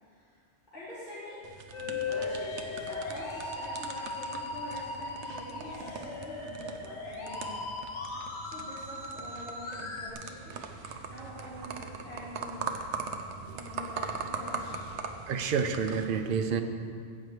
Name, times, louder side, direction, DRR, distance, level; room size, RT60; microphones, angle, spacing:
voice 1, 0.0-0.4 0.7-1.4 1.7-7.6 8.4-12.9 13.5-15.0, left 1 dB, 40° left, -12 dB, 2.5 m, -45 dB
sound 1, 1.4-16.0, right 5 dB, 80° right, 1.0 m, -41 dB
Musical instrument, 1.7-10.1, left 3 dB, 75° left, 1.5 m, -38 dB
voice 2, 15.1-16.6, right 6 dB, 55° right, 6 dB, 0.8 m, -30 dB
17.0 x 8.4 x 3.2 m, 2.2 s
omnidirectional pair, 1.2 m